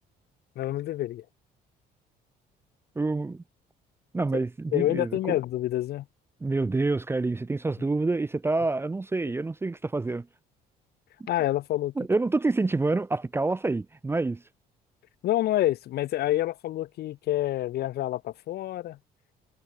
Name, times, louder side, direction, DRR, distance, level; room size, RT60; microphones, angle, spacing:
voice 1, 0.6-1.2 4.7-6.0 11.3-11.9 15.2-19.0, left 14 dB, 70° left, 2.7 m, -27 dB
voice 2, 3.0-3.4 4.1-5.2 6.4-10.3 12.0-14.4, right 3 dB, 15° right, 0.7 m, -27 dB
cardioid pair, 110°, 17 cm